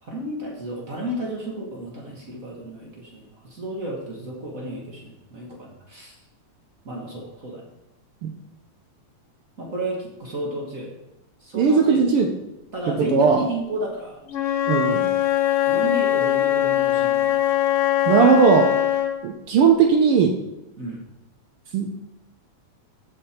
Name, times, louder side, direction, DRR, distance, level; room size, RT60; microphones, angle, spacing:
voice 1, 0.0-6.2 6.8-7.7 9.6-10.9 11.4-12.3 12.7-14.2 15.7-17.4 20.8-21.0, right 1 dB, 40° right, -2 dB, 1.3 m, -32 dB
voice 2, 11.5-12.3 13.1-13.4 14.7-15.1 18.1-18.7 19.2-20.3 21.7-22.0, right 6 dB, 80° right, 4 dB, 1.3 m, -17 dB
Wind instrument woodwind instrument, 14.3-19.3, left 12 dB, 60° left, 1.8 m, -21 dB
14.0 x 5.3 x 4.3 m, 0.93 s
omnidirectional pair, 3.4 m